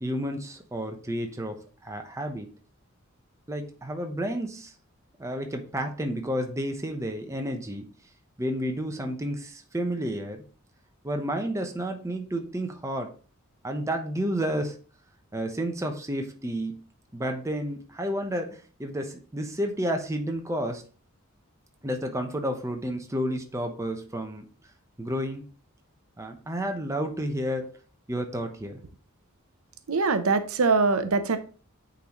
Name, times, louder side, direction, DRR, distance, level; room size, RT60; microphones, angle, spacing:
voice 1, 0.0-2.5 3.5-4.7 5.2-7.8 8.4-10.4 11.0-13.1 13.6-14.8 15.3-16.8 17.1-20.8 21.8-24.4 25.0-25.4 26.2-27.7 28.1-28.8, equal, 15° right, 4 dB, 0.8 m, -31 dB
voice 2, 29.9-31.4, right 4 dB, 80° right, 9 dB, 0.7 m, -23 dB
9.1 x 4.0 x 3.0 m, 0.39 s
head